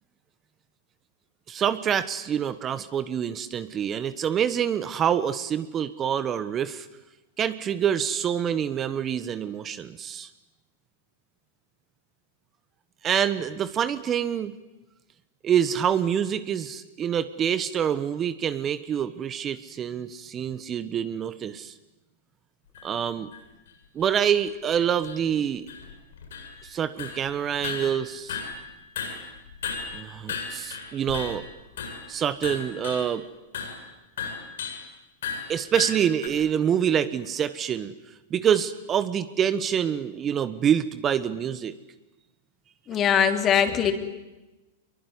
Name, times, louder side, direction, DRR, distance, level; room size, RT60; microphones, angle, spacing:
voice 1, 1.5-6.9 7.4-10.3 13.0-14.5 15.4-21.7 22.8-23.3 23.9-25.7 26.6-28.4 29.9-31.4 32.1-33.3 35.5-37.9 38.3-41.8, right 8 dB, 30° right, 13 dB, 1.3 m, -26 dB
sound 1, 22.7-22.8 23.3-23.4 24.0-24.1 24.3-24.4 25.0-25.3 25.7-26.7 27.0-27.3 27.6-28.7 29.0-31.5 31.8-32.1 32.4-33.1 33.5-33.8 34.2-34.9 35.2-36.3, left 6 dB, 75° left, 7.9 m, -35 dB
voice 2, 42.9-43.9, left 8 dB, 30° left, 7 dB, 3.4 m, -21 dB
24.5 x 23.0 x 9.9 m, 1.0 s
hypercardioid pair, 110°, 0 cm